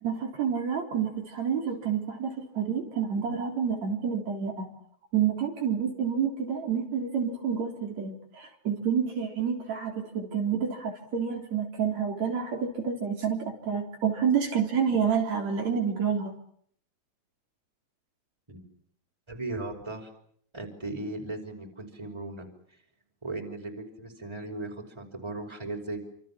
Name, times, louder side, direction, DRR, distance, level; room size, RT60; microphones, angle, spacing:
voice 1, 0.0-4.7 5.1-16.3, right 7 dB, 70° right, 2 dB, 4.8 m, -29 dB
voice 2, 19.3-20.1 20.5-22.8 23.2-26.0, right 2 dB, 10° right, 3 dB, 5.3 m, -37 dB
29.0 x 27.0 x 7.4 m, 0.64 s
omnidirectional pair, 3.3 m